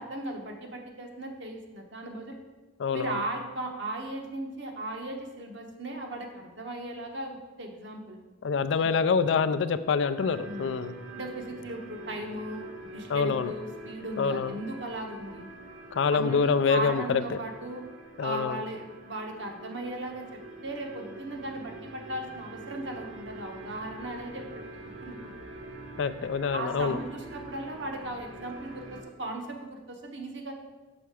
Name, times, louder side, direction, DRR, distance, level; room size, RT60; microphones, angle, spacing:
voice 1, 0.0-2.4 2.9-8.2 8.8-8.9 10.5-10.7 11.1-15.5 16.1-17.8 18.2-24.4 24.7-25.5 26.5-30.5, right 1 dB, 70° right, 2 dB, 1.1 m, -37 dB
voice 2, 2.8-3.2 8.4-10.9 13.1-13.5 14.2-14.6 15.9-17.4 18.2-18.6 26.0-27.0, left 5 dB, 70° left, 12 dB, 0.4 m, -26 dB
sound 1, 10.2-29.0, right 2 dB, 90° right, 1.1 m, -45 dB
6.2 x 5.6 x 4.7 m, 1.2 s
head